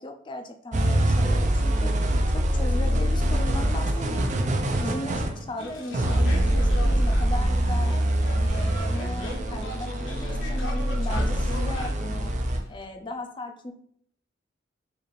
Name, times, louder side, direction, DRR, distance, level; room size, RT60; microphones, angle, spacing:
voice 1, 0.0-1.9 2.3-4.4 4.8-7.9 8.3-12.3 12.7-13.7, left 2 dB, 25° left, 6 dB, 0.4 m, -37 dB
sound 1, 0.7-12.6, right 1 dB, 40° right, 0.5 m, -24 dB
sound 2, 5.6-12.8, left 1 dB, 80° left, 1.0 m, -39 dB
4.8 x 2.5 x 3.2 m, 0.65 s
head